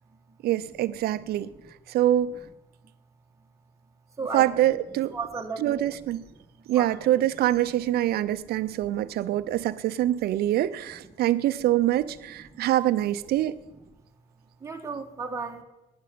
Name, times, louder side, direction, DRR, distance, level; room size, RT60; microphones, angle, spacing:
voice 1, 0.4-1.5 1.9-2.3 4.3-5.2 5.6-6.2 6.7-13.6, right 13 dB, 70° right, 0.6 m, -25 dB
voice 2, 1.3-1.7 4.2-4.5 5.1-6.0 6.5-6.9 8.7-8.8 9.1-9.4 12.4-12.7 14.6-15.6, right 4 dB, 20° right, 1.6 m, -36 dB
9.8 x 9.6 x 6.9 m
cardioid pair, 110°, 17 cm